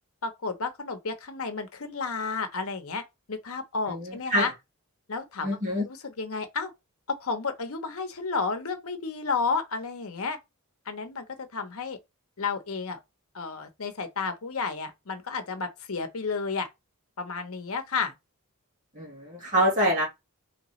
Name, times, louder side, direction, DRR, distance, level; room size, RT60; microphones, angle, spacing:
voice 1, 0.2-4.5 5.1-5.5 5.9-6.7 7.1-10.4 10.9-12.0 12.4-13.0 13.3-16.7 17.2-18.1, left 4 dB, 70° left, 0.8 m, -32 dB
voice 2, 3.9-4.5 5.4-5.9 19.0-20.1, equal, 35° right, 2.0 m, -26 dB
3.9 x 3.2 x 3.1 m
head